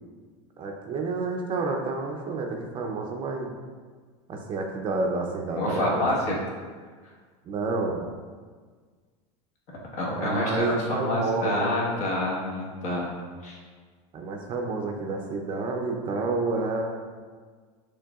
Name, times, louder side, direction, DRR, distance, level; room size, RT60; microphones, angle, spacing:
voice 1, 0.6-3.5 4.3-6.1 7.5-8.0 10.1-11.8 14.1-16.8, right 3 dB, 30° right, 1 dB, 0.5 m, -29 dB
voice 2, 5.5-6.4 9.9-13.1 13.4-13.6, left 1 dB, 50° left, -3 dB, 1.2 m, -27 dB
6.6 x 3.2 x 2.3 m, 1.6 s
supercardioid pair, 130°, 16 cm